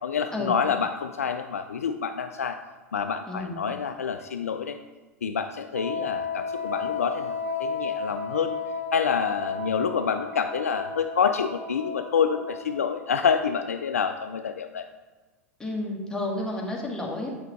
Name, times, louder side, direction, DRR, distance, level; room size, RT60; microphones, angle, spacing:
voice 1, 0.0-2.6 2.9-4.8 5.2-7.3 7.6-8.6 8.9-14.8, left 6 dB, 80° left, 8 dB, 0.4 m, -27 dB
voice 2, 3.3-3.6 15.6-17.3, left 1 dB, 10° left, -2 dB, 1.8 m, -31 dB
Wind instrument woodwind instrument, 5.7-13.1, left 4 dB, 65° right, 2.2 m, -33 dB
8.5 x 5.6 x 3.5 m, 1.3 s
figure-of-eight pair, 85°, 8 cm